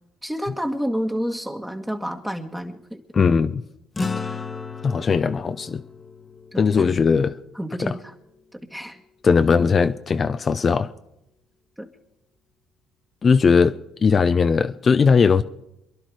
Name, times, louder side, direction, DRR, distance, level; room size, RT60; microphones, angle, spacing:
voice 1, 0.2-3.0 6.5-6.9 7.5-8.1 8.5-9.0 11.8-11.9, equal, 5° right, 1.5 m, -29 dB
voice 2, 3.1-3.6 4.2-4.3 4.8-5.8 6.6-7.4 7.8-7.9 9.2-10.9 13.2-15.4, left 5 dB, 40° left, 0.7 m, -19 dB
sound 1, 4.0-8.6, left 4 dB, 25° left, 1.3 m, -34 dB
27.5 x 11.0 x 4.8 m
supercardioid pair, 75°, 0 cm